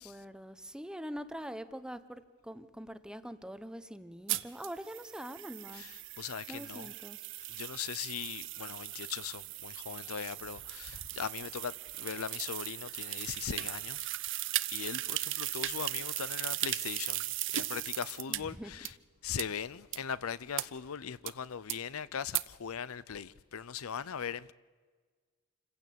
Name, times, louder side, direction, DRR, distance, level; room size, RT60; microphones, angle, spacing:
voice 1, 0.0-5.9 6.5-7.2 18.3-18.7, equal, 5° right, 0.8 m, -44 dB
sound 1, 4.3-18.4 18.9-19.0 19.4-19.5 19.9-20.0 20.6-20.7 21.3-21.4 21.7-21.8 22.3-22.4, right 15 dB, 60° right, 0.7 m, -37 dB
voice 2, 6.2-6.9 7.5-14.1 14.7-17.2 17.5-18.9 19.2-24.5, left 7 dB, 85° left, 0.6 m, -39 dB
27.0 x 15.5 x 8.5 m
head